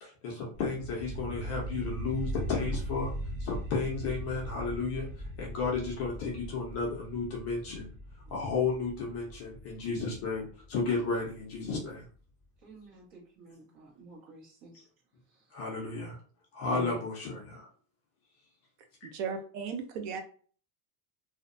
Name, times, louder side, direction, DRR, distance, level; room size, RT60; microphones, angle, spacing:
voice 1, 0.0-3.1 3.4-5.1 5.4-7.9 8.3-12.0 15.5-16.2 16.5-17.7, left 4 dB, 30° left, -2 dB, 0.4 m, -33 dB
sound 1, 0.5-11.6, equal, 30° right, 1.0 m, -40 dB
voice 2, 12.6-14.7, right 2 dB, 50° right, -3 dB, 1.2 m, -53 dB
voice 3, 19.0-20.2, right 6 dB, 80° right, 5 dB, 0.7 m, -36 dB
2.6 x 2.1 x 2.5 m, 0.43 s
cardioid pair, 160°, 49 cm